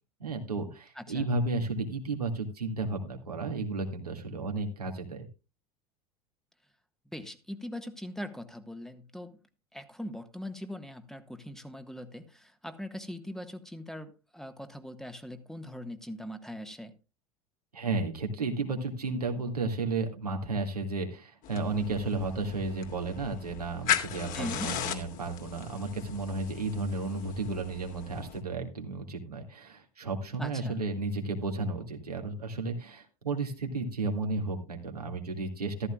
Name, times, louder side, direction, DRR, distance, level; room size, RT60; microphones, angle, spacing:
voice 1, 0.2-5.3 17.7-35.9, right 3 dB, 85° right, 3 dB, 2.2 m, -33 dB
voice 2, 0.9-1.3 7.0-9.4 9.7-16.9 24.3-24.7 30.4-30.8, left 1 dB, ahead, 8 dB, 1.5 m, -41 dB
sound 1, 21.4-28.4, left 9 dB, 45° left, 2.6 m, -37 dB
14.0 x 14.0 x 2.4 m, 0.29 s
figure-of-eight pair, 75°, 19 cm